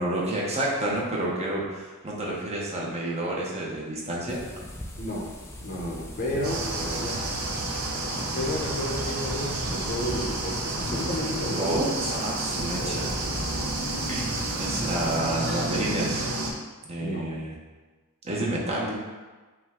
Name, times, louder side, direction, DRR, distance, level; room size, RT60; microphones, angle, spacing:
voice 1, 0.0-4.4 7.7-7.8 8.3-8.4 11.6-13.1 13.5-13.6 14.1-16.2 16.9-17.5 18.2-18.9, right 1 dB, 30° right, -4 dB, 0.8 m, -29 dB
sound 1, 4.3-15.2, left 1 dB, 10° left, 0.4 m, -41 dB
voice 2, 5.0-5.3 5.6-7.3 8.3-11.6 12.5-13.5 17.0-17.3, left 1 dB, 45° left, -2 dB, 0.7 m, -32 dB
sound 2, 6.4-16.5, right 2 dB, 70° right, 0.7 m, -30 dB
5.5 x 2.2 x 3.6 m, 1.3 s
head